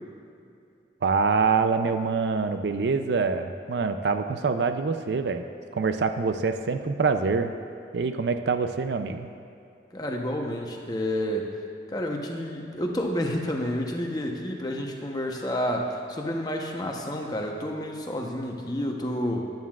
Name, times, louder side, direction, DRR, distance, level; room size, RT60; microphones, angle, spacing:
voice 1, 1.0-5.4 5.7-7.5 7.9-9.3, right 4 dB, 75° right, 8 dB, 0.5 m, -25 dB
voice 2, 9.9-11.5 11.9-19.4, equal, 20° left, 1 dB, 0.9 m, -30 dB
14.5 x 10.5 x 2.4 m, 2.6 s
head